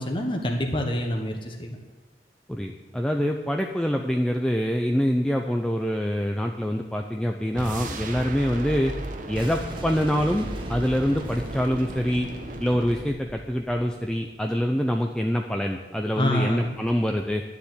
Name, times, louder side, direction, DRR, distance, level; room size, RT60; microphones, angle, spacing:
voice 1, 0.0-1.8 16.2-16.8, left 1 dB, 30° left, 2 dB, 1.2 m, -26 dB
voice 2, 2.5-8.9 9.3-12.3 12.6-17.4, equal, 5° left, 2 dB, 0.6 m, -25 dB
sound 1, 7.5-13.1, right 2 dB, 45° right, 1.1 m, -36 dB
Boom, 9.4-14.3, right 1 dB, 30° right, 1.4 m, -38 dB
11.5 x 7.2 x 9.7 m, 1.3 s
head